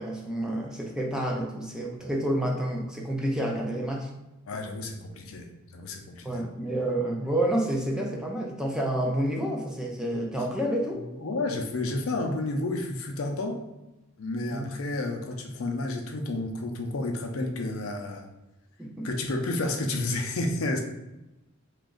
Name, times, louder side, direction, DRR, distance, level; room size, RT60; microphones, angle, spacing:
voice 1, 0.0-4.1 6.2-11.0 14.5-14.7 18.8-19.1, right 1 dB, 5° right, -2 dB, 0.5 m, -29 dB
voice 2, 4.5-6.4 10.9-13.6 14.2-18.3 19.0-20.8, left 2 dB, 75° left, 3 dB, 0.5 m, -31 dB
2.9 x 2.5 x 3.7 m, 0.97 s
head